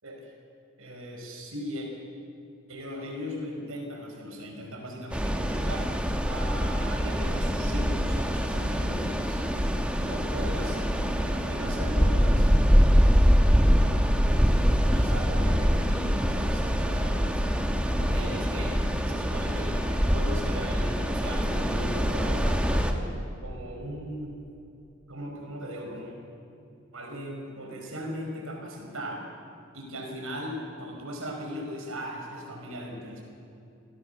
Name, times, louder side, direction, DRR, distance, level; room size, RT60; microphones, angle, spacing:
voice 1, 0.8-1.9 2.7-5.9 6.3-9.4 10.0-12.5 13.8-14.1 14.8-17.6 18.0-18.8 19.1-24.4 25.1-26.2 26.9-29.3 29.7-33.2, equal, 85° right, 1 dB, 5.1 m, -38 dB
sound 1, 5.1-22.9, equal, 5° right, 1.2 m, -24 dB
27.5 x 17.0 x 6.9 m, 2.5 s
head